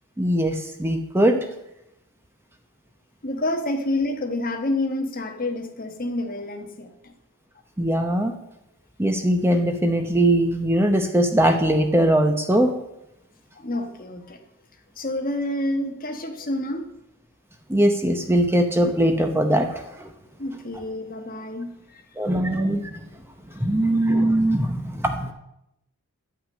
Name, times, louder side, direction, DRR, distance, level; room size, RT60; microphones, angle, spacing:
voice 1, 0.2-1.4 7.8-8.4 9.0-12.7 17.7-20.1 22.2-23.0 23.6-25.3, right 1 dB, 10° right, 5 dB, 0.7 m, -21 dB
voice 2, 3.2-7.1 13.6-14.4 15.0-16.9 20.4-22.0, left 1 dB, 40° left, 5 dB, 1.2 m, -28 dB
11.0 x 6.0 x 8.5 m, 0.85 s
head